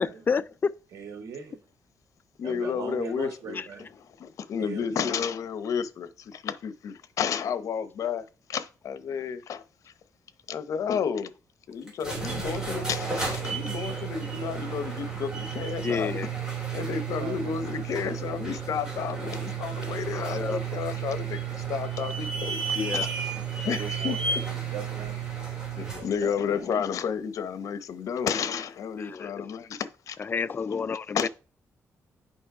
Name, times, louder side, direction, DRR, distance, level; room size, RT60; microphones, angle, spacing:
voice 1, 0.0-0.7 3.6-3.7 15.8-16.3 20.1-20.7 22.8-23.1 29.0-29.5 30.2-31.3, left 5 dB, 35° left, 0.4 m, -30 dB
voice 2, 0.9-1.6 2.4-3.9 4.6-5.2 17.2-17.5 23.6-25.2 25.8-26.3, right 6 dB, 85° right, 2.5 m, -40 dB
voice 3, 2.4-3.9 4.2-8.2 8.5-9.6 10.5-11.3 11.7-16.1 16.7-21.4 21.7-23.1 23.6-24.4 25.8-30.2 31.1-31.3, left 7 dB, 70° left, 0.9 m, -31 dB
sound 1, 11.9-26.1, right 6 dB, 10° right, 3.5 m, -32 dB
8.6 x 5.3 x 4.8 m
wide cardioid pair, 140°, 6 cm